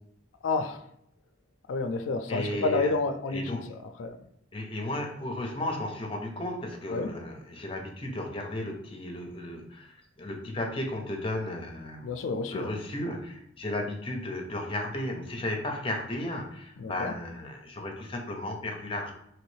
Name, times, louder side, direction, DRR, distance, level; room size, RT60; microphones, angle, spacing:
voice 1, 0.4-0.8 1.7-4.2 6.9-7.1 12.0-12.7 16.8-17.1, left 3 dB, 80° left, 0.3 m, -30 dB
voice 2, 2.3-2.9 3.3-3.7 4.5-12.2 12.5-19.1, left 1 dB, 30° left, 0.6 m, -34 dB
3.1 x 2.9 x 3.1 m
head